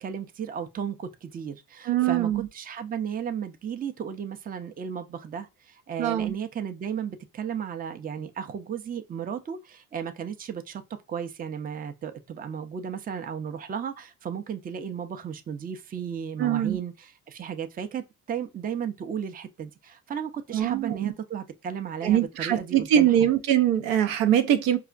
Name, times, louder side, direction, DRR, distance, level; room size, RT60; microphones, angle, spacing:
voice 1, 0.0-10.8 11.1-23.3, right 7 dB, 25° right, 0.5 m, -34 dB
voice 2, 1.9-2.5 6.0-6.3 16.4-16.8 20.5-21.1 22.0-24.8, right 10 dB, 80° right, 0.6 m, -22 dB
4.7 x 2.2 x 2.4 m
supercardioid pair, 90°, 35 cm